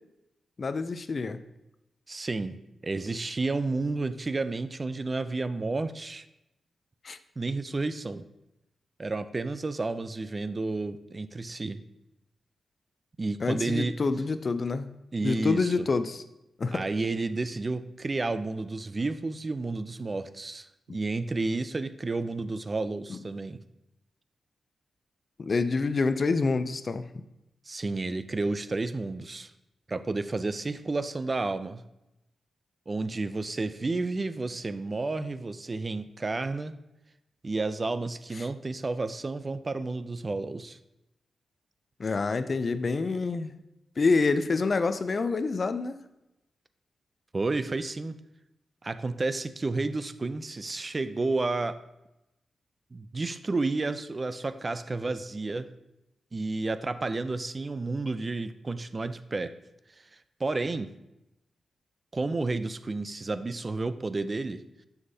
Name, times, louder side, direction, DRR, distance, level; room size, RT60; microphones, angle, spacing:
voice 1, 0.6-1.4 7.0-7.2 13.4-14.9 15.2-16.2 16.6-16.8 20.9-21.0 23.1-23.2 25.4-27.0 38.4-38.5 42.0-43.6 44.0-46.0, left 4 dB, 40° left, 12 dB, 0.4 m, -27 dB
voice 2, 2.1-2.6 2.8-6.2 7.4-8.2 9.0-11.8 13.2-14.0 15.1-15.9 16.7-23.6 27.7-29.5 29.9-31.8 32.9-36.7 37.4-40.8 47.3-48.2 48.8-51.8 52.9-55.7 56.3-59.5 60.4-60.9 62.1-64.6, right 3 dB, 30° right, 12 dB, 0.4 m, -31 dB
7.1 x 6.5 x 2.8 m, 0.90 s
cardioid pair, 100°, 0 cm